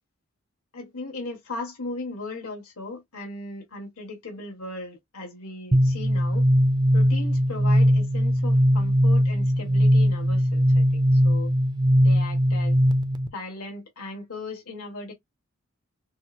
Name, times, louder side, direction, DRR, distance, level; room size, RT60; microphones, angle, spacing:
voice 1, 0.7-6.4 6.9-11.5 12.0-12.8 13.3-15.1, left 2 dB, 80° left, 1.7 m, -37 dB
sound 1, 5.7-13.3, equal, 20° right, 0.5 m, -20 dB
6.0 x 2.1 x 2.7 m
head